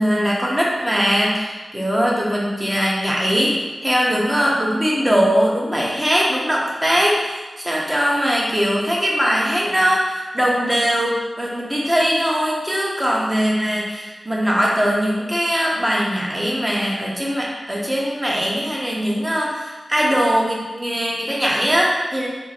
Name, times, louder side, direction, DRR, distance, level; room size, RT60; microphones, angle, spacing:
voice 1, 0.0-3.6 3.8-22.3, equal, 15° right, -4 dB, 1.1 m, -20 dB
4.4 x 2.2 x 4.3 m, 1.2 s
cardioid pair, 50°, 0 cm